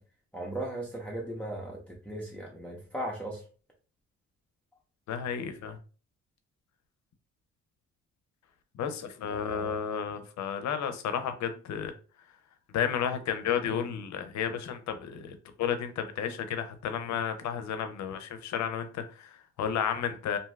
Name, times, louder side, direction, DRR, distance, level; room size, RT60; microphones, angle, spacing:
voice 1, 0.3-3.4 9.3-9.8, right 1 dB, 5° left, 0.7 m, -37 dB
voice 2, 5.1-5.8 8.7-11.9 12.7-20.4, left 8 dB, 65° left, 0.6 m, -32 dB
2.7 x 2.3 x 3.1 m
cardioid pair, 90°, 30 cm